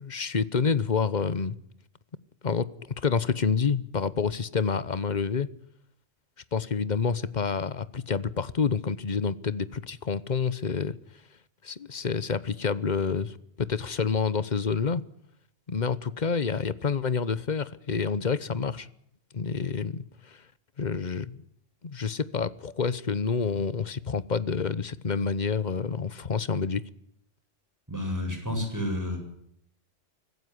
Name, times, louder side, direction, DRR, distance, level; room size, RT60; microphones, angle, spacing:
voice 1, 0.0-1.6 2.4-2.7 3.0-5.5 6.5-11.0 11.6-15.0 15.7-18.9 19.3-20.4 20.8-21.4 21.8-26.8, left 5 dB, 40° left, 1.1 m, -28 dB
voice 2, 27.9-29.2, left 1 dB, 15° right, 7.8 m, -30 dB
25.0 x 15.0 x 9.4 m
omnidirectional pair, 1.2 m